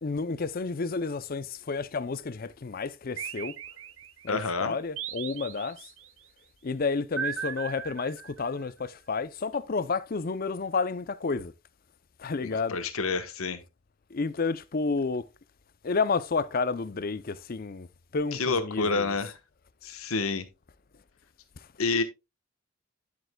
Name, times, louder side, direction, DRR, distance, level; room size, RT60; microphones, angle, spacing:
voice 1, 0.0-3.6 4.2-5.9 6.6-11.5 12.2-12.8 14.1-15.3 15.8-17.9 18.1-19.2, left 4 dB, 45° left, 0.5 m, -30 dB
sound 1, 3.2-4.3 5.0-6.1 7.2-8.6, right 8 dB, 65° right, 0.7 m, -37 dB
voice 2, 4.3-4.8 12.4-13.6 18.3-19.4 19.8-20.4 21.8-22.0, left 4 dB, 80° left, 1.2 m, -29 dB
10.5 x 7.8 x 2.2 m
head